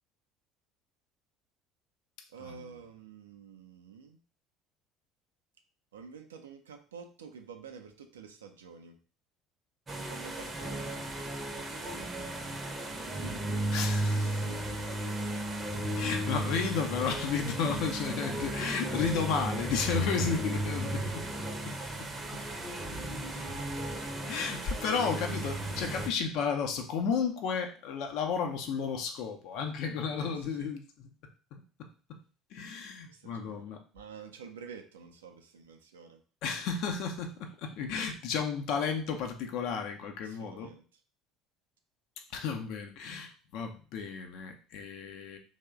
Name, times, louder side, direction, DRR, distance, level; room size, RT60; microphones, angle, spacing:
voice 1, 2.3-4.2 5.9-9.0 10.0-11.1 11.5-12.2 15.7-16.3 18.8-19.0 23.4-23.5 30.2-30.7 33.1-36.2 40.2-40.8, right 6 dB, 75° right, 6 dB, 0.4 m, -49 dB
sound 1, 9.9-26.1, right 1 dB, 25° right, 0.6 m, -34 dB
voice 2, 13.7-14.5 15.9-21.3 21.7-22.4 24.2-31.1 31.5-32.2 32.5-33.8 36.4-40.7 42.3-45.4, left 6 dB, 60° left, 5 dB, 0.5 m, -33 dB
3.0 x 2.0 x 3.4 m, 0.38 s
figure-of-eight pair, 60°, 0 cm